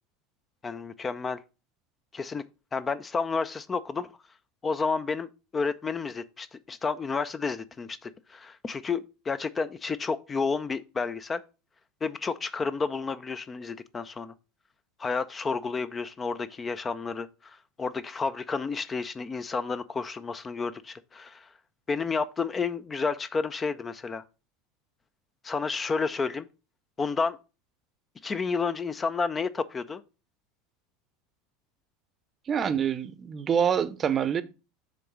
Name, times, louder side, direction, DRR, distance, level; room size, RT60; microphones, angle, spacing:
voice 1, 0.6-1.4 2.1-2.4 2.7-4.1 4.6-11.4 12.0-14.3 15.0-21.5 21.9-24.2 25.4-26.5 27.0-27.4 28.2-30.0, left 4 dB, 25° left, 0.5 m, -31 dB
voice 2, 32.5-34.4, right 8 dB, 30° right, 0.7 m, -26 dB
6.6 x 3.9 x 6.2 m
figure-of-eight pair, 75°, 0 cm